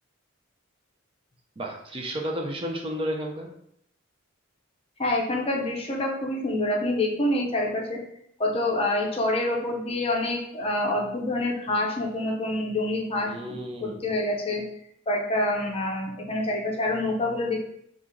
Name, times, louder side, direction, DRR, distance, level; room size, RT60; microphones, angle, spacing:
voice 1, 1.6-3.5 13.2-14.0, equal, 25° right, 1 dB, 0.5 m, -32 dB
voice 2, 5.0-8.0 8.4-13.3 13.8-14.6 15.1-17.6, left 1 dB, 30° left, -1 dB, 0.6 m, -26 dB
4.3 x 2.5 x 3.6 m, 0.72 s
head